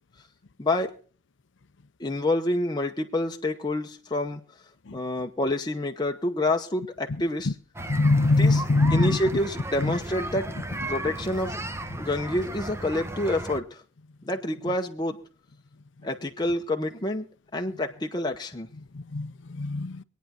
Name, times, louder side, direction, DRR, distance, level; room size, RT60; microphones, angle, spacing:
voice 1, 0.6-0.9 2.0-4.4 4.9-7.5 8.4-8.6 8.9-10.5 10.9-11.6 12.0-13.8 14.2-15.2 16.0-17.3 17.5-18.7, left 1 dB, 20° left, 0.9 m, -28 dB
sound 1, 7.7-13.6, right 1 dB, 15° right, 1.0 m, -35 dB
voice 2, 7.9-9.2 9.8-10.0 18.9-20.0, left 2 dB, 65° left, 0.6 m, -23 dB
23.5 x 9.3 x 4.3 m
head